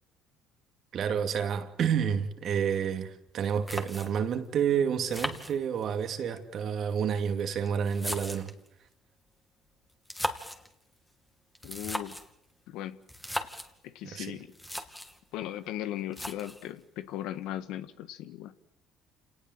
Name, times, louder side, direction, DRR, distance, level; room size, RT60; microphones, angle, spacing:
voice 1, 0.9-8.5 14.0-14.4, right 7 dB, 55° right, 2.6 m, -29 dB
sound 1, 3.3-3.4 3.7-4.3 5.1-6.1 7.0-8.7 9.9-10.7 11.5-12.3 13.1-13.7 14.3-14.4 14.5-15.2 16.1-16.7, left 1 dB, 5° left, 2.7 m, -37 dB
voice 2, 11.6-12.1 12.7-13.0 13.8-14.5 15.3-18.5, left 12 dB, 75° left, 1.6 m, -37 dB
28.0 x 18.5 x 7.9 m
supercardioid pair, 75°, 0 cm